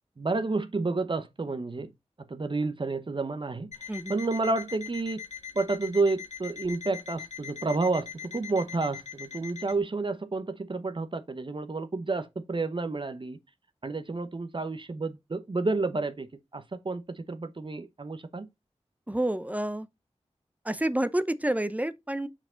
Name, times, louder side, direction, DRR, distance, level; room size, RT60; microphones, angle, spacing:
voice 1, 0.2-1.9 2.3-3.7 4.1-5.2 5.5-13.4 13.8-16.3 16.5-18.5, right 3 dB, 45° right, 0.8 m, -30 dB
Alarm, 3.7-9.8, left 7 dB, 90° left, 1.5 m, -42 dB
voice 2, 3.9-4.2 19.1-19.9 20.6-22.3, right 1 dB, 15° right, 0.6 m, -29 dB
5.9 x 4.9 x 3.7 m
wide cardioid pair, 50°, 12 cm